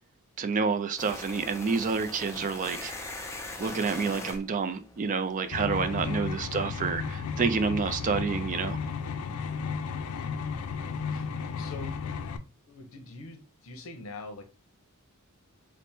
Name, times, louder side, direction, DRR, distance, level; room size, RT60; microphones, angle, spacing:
voice 1, 0.4-2.9 3.6-8.8, right 5 dB, 35° right, 0.3 m, -29 dB
sound 1, 1.0-5.8, left 2 dB, 15° left, 0.5 m, -41 dB
sound 2, 5.5-12.4, left 5 dB, 85° left, 0.4 m, -33 dB
voice 2, 11.1-12.0 12.7-14.4, left 2 dB, 70° left, 0.7 m, -44 dB
3.3 x 2.1 x 4.1 m
head